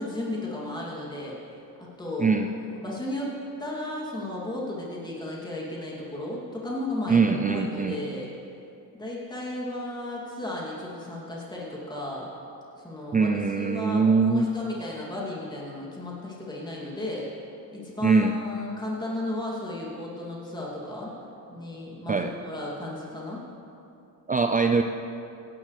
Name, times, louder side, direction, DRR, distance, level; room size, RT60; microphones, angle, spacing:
voice 1, 0.0-1.4 2.0-8.3 8.9-12.3 12.8-13.3 13.6-17.3 17.7-21.1 21.5-23.4, left 1 dB, 10° left, -5 dB, 2.7 m, -34 dB
voice 2, 7.1-8.0 13.1-14.5 18.0-18.3 22.1-22.3 24.3-24.8, right 4 dB, 20° right, 6 dB, 0.4 m, -22 dB
16.5 x 11.0 x 3.3 m, 2.7 s
cardioid pair, 95°, 42 cm